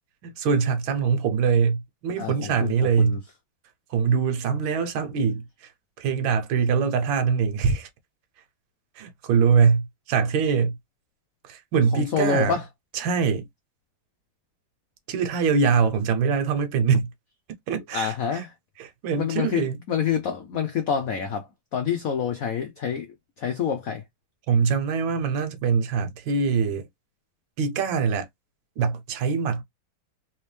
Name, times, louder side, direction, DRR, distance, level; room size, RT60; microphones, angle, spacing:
voice 1, 0.2-3.2 3.9-5.7 6.0-7.9 8.9-10.8 11.4-12.6 12.9-13.5 15.1-17.1 17.7-18.4 18.8-19.8 24.5-26.9 27.6-28.3 28.8-29.6, right 6 dB, 70° right, 1.6 m, -23 dB
voice 2, 2.2-3.2 11.9-12.6 17.9-18.5 19.2-23.1 23.4-24.0, left 7 dB, 80° left, 0.7 m, -27 dB
3.5 x 3.0 x 3.2 m
omnidirectional pair, 2.2 m